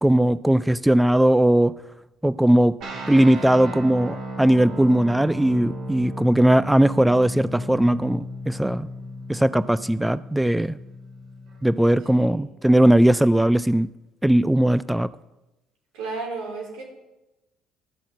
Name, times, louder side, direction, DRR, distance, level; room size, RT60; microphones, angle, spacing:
voice 1, 0.0-1.7 2.2-2.8 3.1-8.9 9.3-10.8 11.6-13.9 14.2-15.1, right 1 dB, 5° right, 17 dB, 0.3 m, -19 dB
sound 1, 2.8-11.7, equal, 65° right, 2.5 m, -35 dB
voice 2, 12.1-12.4 15.9-16.8, right 3 dB, 80° right, 1 dB, 3.6 m, -33 dB
12.5 x 6.4 x 7.4 m, 1.0 s
supercardioid pair, 75°, 0 cm